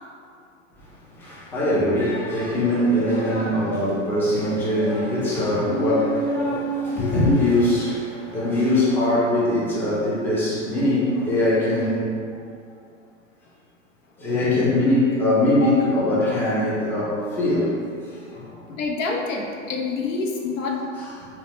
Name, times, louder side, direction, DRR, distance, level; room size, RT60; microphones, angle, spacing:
voice 1, 0.8-12.4 14.2-18.6 21.0-21.3, left 1 dB, 5° left, -8 dB, 0.5 m, -22 dB
voice 2, 18.7-20.8, left 4 dB, 85° left, 0 dB, 0.6 m, -27 dB
3.2 x 2.1 x 2.9 m, 2.3 s
hypercardioid pair, 105°, 38 cm